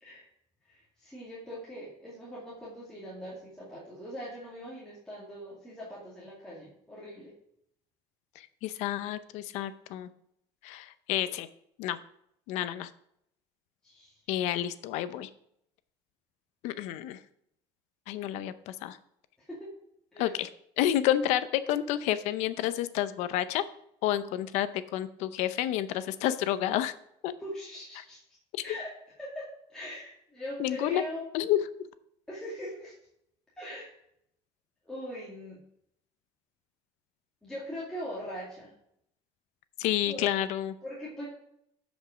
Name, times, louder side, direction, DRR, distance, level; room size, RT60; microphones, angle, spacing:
voice 1, 0.7-7.3 13.8-14.1 18.2-18.3 19.4-19.7 20.1-20.3 27.4-28.2 28.6-28.9 29.2-29.4 29.7-31.3 32.3-32.9 33.6-33.9 34.8-35.6 37.4-38.7 40.1-40.2 40.8-41.2, equal, 5° left, -7 dB, 2.1 m, -41 dB
voice 2, 8.4-10.1 10.6-11.5 11.8-12.0 12.5-12.9 14.3-15.3 16.6-17.2 18.1-19.0 20.2-20.5 20.8-23.6 24.0-26.9 27.2-27.3 28.5-28.6 30.6-31.0 31.3-31.6 39.8-40.7, left 12 dB, 80° left, 14 dB, 0.6 m, -29 dB
13.0 x 5.3 x 5.0 m, 0.75 s
cardioid pair, 155°, 12 cm